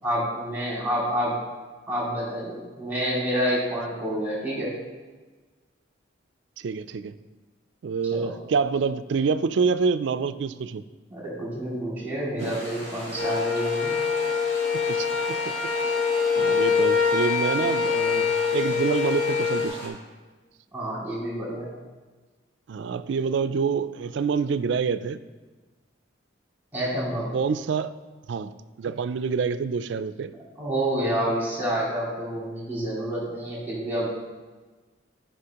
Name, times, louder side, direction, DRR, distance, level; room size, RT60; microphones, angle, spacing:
voice 1, 0.0-1.4 1.9-4.7 8.1-8.3 11.1-13.9 20.7-21.7 26.7-27.4 30.6-34.1, right 1 dB, 10° right, -6 dB, 2.4 m, -28 dB
voice 2, 6.6-7.1 7.8-10.8 12.4-12.5 15.0-15.4 15.9-16.0 16.4-20.0 22.7-25.2 27.3-27.9 28.3-28.5 28.8-30.3, right 5 dB, 65° right, 12 dB, 0.3 m, -27 dB
sound 1, 12.4-19.9, equal, 55° left, 2.5 m, -39 dB
sound 2, 13.2-19.7, left 6 dB, 75° left, 1.3 m, -24 dB
13.0 x 5.6 x 2.9 m, 1.3 s
head